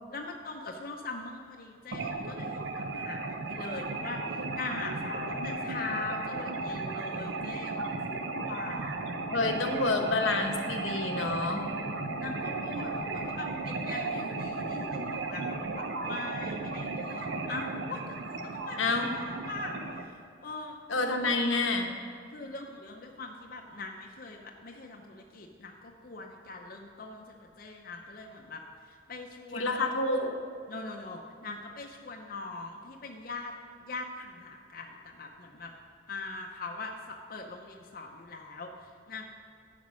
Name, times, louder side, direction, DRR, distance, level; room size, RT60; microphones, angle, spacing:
voice 1, 0.1-9.0 9.5-9.6 12.2-21.8 22.3-29.9 30.7-33.5 33.8-35.7 36.1-39.2, left 3 dB, 45° left, 1 dB, 0.6 m, -42 dB
sound 1, 1.9-20.0, right 3 dB, 65° right, 0.6 m, -35 dB
voice 2, 9.3-11.7 18.8-19.1 20.9-21.9 29.5-30.3, left 3 dB, 85° left, 3 dB, 1.0 m, -28 dB
9.5 x 5.2 x 6.2 m, 2.2 s
head